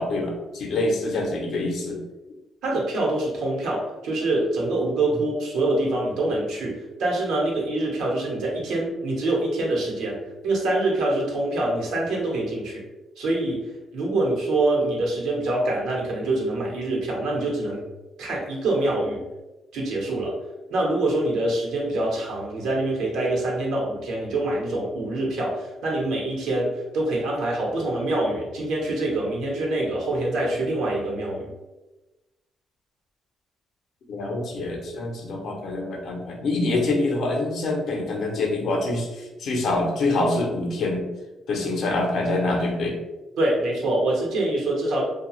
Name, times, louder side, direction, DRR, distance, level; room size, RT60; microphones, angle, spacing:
voice 1, 0.0-2.0 34.1-41.1 41.5-43.0, left 2 dB, 70° left, 1 dB, 0.6 m, -25 dB
voice 2, 2.6-12.8 13.2-13.6 13.9-17.8 18.2-19.2 19.7-20.3 20.7-31.5 43.4-45.0, right 2 dB, 85° right, -3 dB, 0.9 m, -25 dB
2.6 x 2.3 x 3.0 m, 1.1 s
cardioid pair, 90°, 0 cm